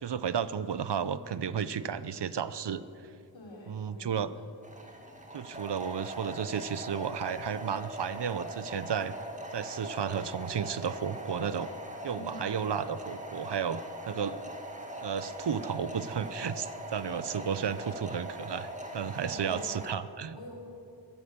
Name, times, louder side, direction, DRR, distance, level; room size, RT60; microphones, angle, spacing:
voice 1, 0.0-2.8 3.7-4.3 5.3-9.1 9.5-11.7 12.0-14.4 15.0-20.4, right 7 dB, 65° right, 15 dB, 0.7 m, -33 dB
voice 2, 3.3-4.4 4.8-4.9 12.1-12.6 19.3-19.7 20.3-20.5, left 1 dB, 85° left, -2 dB, 3.7 m, -47 dB
sound 1, 4.6-19.9, right 1 dB, 15° right, 2.1 m, -41 dB
14.5 x 14.0 x 6.8 m, 2.5 s
cardioid pair, 45°, 44 cm